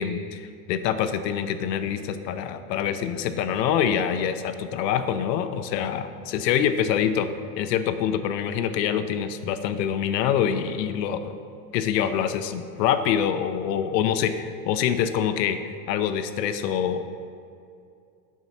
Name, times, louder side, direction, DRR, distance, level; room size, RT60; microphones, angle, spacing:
voice 1, 0.0-7.3 7.6-11.3 11.7-17.1, left 8 dB, 80° left, 10 dB, 0.8 m, -25 dB
10.5 x 4.8 x 5.6 m, 2.5 s
supercardioid pair, 145°, 49 cm